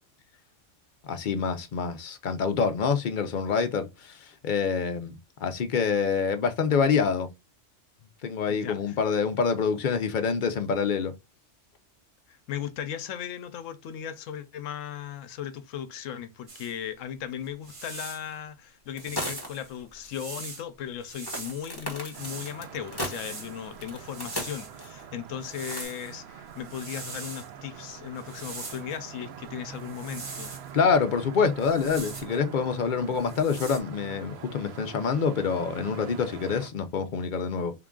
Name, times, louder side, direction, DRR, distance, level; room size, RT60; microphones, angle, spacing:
voice 1, 1.0-7.3 8.2-11.1 30.7-37.7, left 5 dB, 55° left, 0.6 m, -26 dB
voice 2, 8.5-9.0 12.3-30.5, left 9 dB, 85° left, 1.0 m, -37 dB
sound 1, 16.5-16.7 17.5-18.3 19.0-20.6 21.0-22.6 23.0-24.8 25.4-26.1 26.5-27.5 28.1-29.0 29.8-30.7 31.6-32.4 33.1-33.8, right 3 dB, 35° right, 0.6 m, -42 dB
sound 2, 19.0-19.7 20.0-20.1 21.3-25.0 25.6-25.8, left 1 dB, 20° left, 1.1 m, -36 dB
sound 3, 22.1-36.7, right 9 dB, 65° right, 0.7 m, -44 dB
3.7 x 2.4 x 3.6 m
omnidirectional pair, 1.3 m